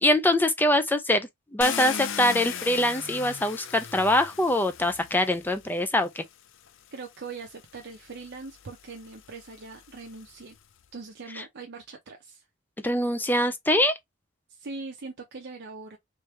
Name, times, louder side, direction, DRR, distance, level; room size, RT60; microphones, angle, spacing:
voice 1, 0.0-6.2 11.3-11.4 12.8-14.0, left 1 dB, 10° left, 0.4 m, -24 dB
Car, 1.6-5.7 6.7-6.8 7.3-10.6, left 8 dB, 65° left, 0.6 m, -38 dB
voice 2, 6.9-10.6 10.9-12.4 14.5-16.0, right 4 dB, 55° right, 0.7 m, -41 dB
3.3 x 3.2 x 3.1 m
head